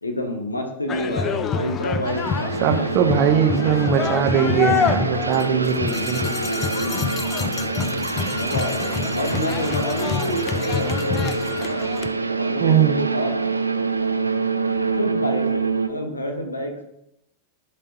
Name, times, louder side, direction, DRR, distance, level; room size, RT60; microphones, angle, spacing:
voice 1, 0.0-3.7 5.2-7.0 8.2-11.3 12.4-13.4 15.0-16.8, equal, 80° left, 4 dB, 0.9 m, -29 dB
sound 1, 0.9-12.1, left 6 dB, 30° left, 0.5 m, -27 dB
sound 2, 2.0-15.9, right 4 dB, 80° right, 0.3 m, -26 dB
voice 2, 2.6-5.7 6.1-6.2 12.6-12.9, right 9 dB, 40° right, 8 dB, 0.7 m, -20 dB
11.0 x 4.3 x 2.7 m, 0.82 s
figure-of-eight pair, 90°, 0 cm